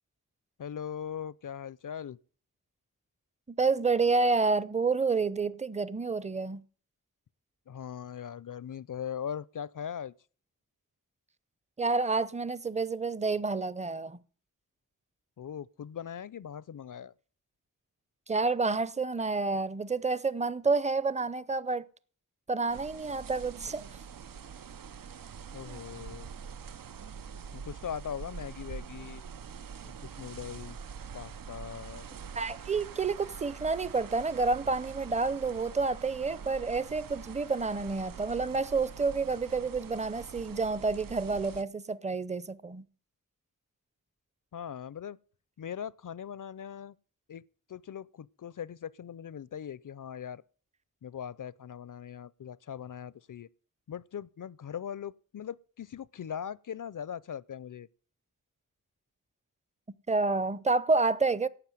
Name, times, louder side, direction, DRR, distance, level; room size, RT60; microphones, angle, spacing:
voice 1, 0.6-2.2 7.7-10.1 15.4-17.1 25.5-26.3 27.5-29.2 29.8-30.8 31.1-32.1 44.5-45.2 45.6-47.0 47.3-47.4 47.7-50.4 51.0-53.5 53.9-57.9, left 8 dB, 65° left, 0.5 m, -40 dB
voice 2, 3.6-6.6 11.8-14.2 18.3-21.9 22.5-23.8 32.4-42.8 60.1-61.5, right 4 dB, 20° right, 0.6 m, -29 dB
sound 1, 22.7-41.6, right 7 dB, 75° right, 0.6 m, -45 dB
12.0 x 8.0 x 9.2 m
wide cardioid pair, 85°, 34 cm